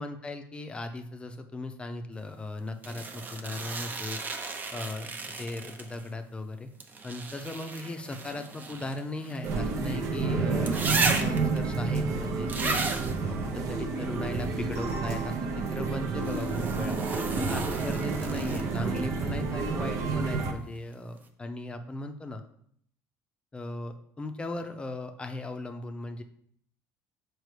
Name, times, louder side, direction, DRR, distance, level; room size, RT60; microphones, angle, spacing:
voice 1, 0.0-4.2 4.7-5.1 5.4-6.7 7.0-12.8 13.3-17.0 17.4-22.4 23.5-26.2, left 2 dB, 15° left, 6 dB, 0.6 m, -37 dB
sound 1, 2.8-6.1 6.8-10.0 10.7-11.6 12.5-13.2 16.2-18.9 20.8-20.9, right 3 dB, 30° right, 0.7 m, -34 dB
sound 2, 9.4-20.5, right 4 dB, 60° right, 0.8 m, -30 dB
6.5 x 4.6 x 3.2 m, 0.65 s
cardioid pair, 120°, 6 cm